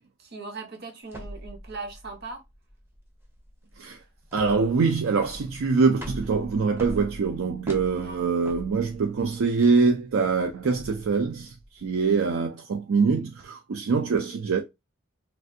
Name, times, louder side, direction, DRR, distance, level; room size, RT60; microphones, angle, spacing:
voice 1, 0.2-2.4 8.0-8.2, right 3 dB, 50° right, 0.8 m, -39 dB
sound 1, 1.1-12.3, equal, 10° right, 0.6 m, -43 dB
voice 2, 4.3-11.5 11.8-14.6, right 4 dB, 70° right, 0.4 m, -24 dB
3.3 x 2.5 x 2.6 m
head